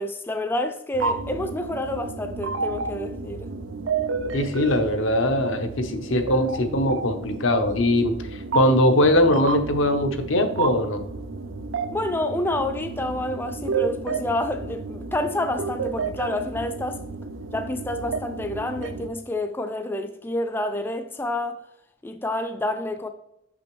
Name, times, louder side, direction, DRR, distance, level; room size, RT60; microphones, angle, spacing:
voice 1, 0.0-3.5 8.5-8.6 11.9-17.0 17.5-21.6 22.0-23.1, left 1 dB, 10° left, 0.3 m, -28 dB
sound 1, 0.9-19.1, right 4 dB, 85° right, 0.5 m, -31 dB
voice 2, 4.3-8.1 8.5-11.0, left 1 dB, 85° left, 0.9 m, -21 dB
6.0 x 5.9 x 3.1 m
head